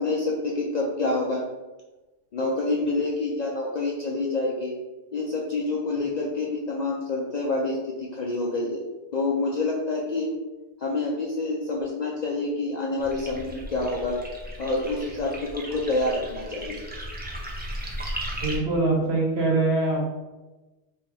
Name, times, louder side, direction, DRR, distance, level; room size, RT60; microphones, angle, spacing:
voice 1, 0.0-1.4 2.3-4.7 5.1-8.8 9.1-10.3 10.8-14.2 14.6-16.8, left 2 dB, 55° left, -3 dB, 0.5 m, -27 dB
sound 1, 13.0-18.6, right 1 dB, 10° right, 0.5 m, -36 dB
voice 2, 18.4-20.1, right 2 dB, 65° right, -2 dB, 1.2 m, -23 dB
3.1 x 2.7 x 4.5 m, 1.1 s
omnidirectional pair, 1.2 m